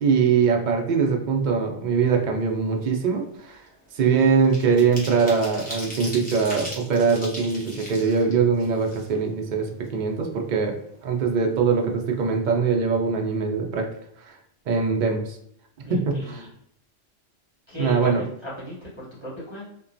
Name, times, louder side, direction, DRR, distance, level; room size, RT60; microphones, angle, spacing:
voice 1, 0.0-3.7 3.9-13.9 14.2-14.4 14.7-15.4 15.9-16.4 17.8-18.2, right 5 dB, 60° right, 2 dB, 0.5 m, -22 dB
sound 1, 2.5-2.7 3.0-9.5 9.8-9.9 10.3-11.2 11.5-11.7 12.0-12.3, equal, 10° left, 0.6 m, -39 dB
voice 2, 15.8-16.5 17.7-19.6, left 1 dB, 25° right, -8 dB, 0.7 m, -38 dB
3.0 x 2.2 x 2.5 m, 0.72 s
omnidirectional pair, 1.3 m